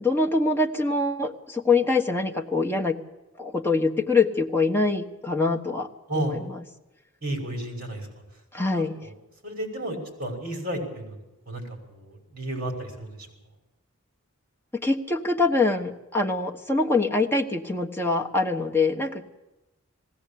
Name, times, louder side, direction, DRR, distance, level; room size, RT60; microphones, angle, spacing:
voice 1, 0.0-3.0 3.4-5.9 6.2-6.6 8.5-9.0 14.7-19.4, left 3 dB, 10° left, 1 dB, 1.3 m, -24 dB
voice 2, 7.2-8.1 8.6-9.1 9.4-13.3, right 1 dB, 40° right, 2 dB, 5.9 m, -33 dB
20.5 x 16.5 x 8.6 m, 1.0 s
head